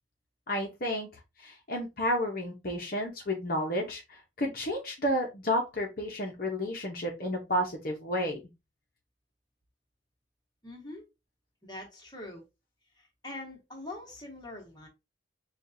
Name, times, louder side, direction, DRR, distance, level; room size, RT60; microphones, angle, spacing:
voice 1, 0.5-1.1 1.4-8.4, equal, 50° left, 0.8 m, -31 dB
voice 2, 10.6-11.1 11.6-12.4 12.9-14.9, left 2 dB, 20° left, 1.4 m, -43 dB
6.3 x 2.4 x 2.7 m
head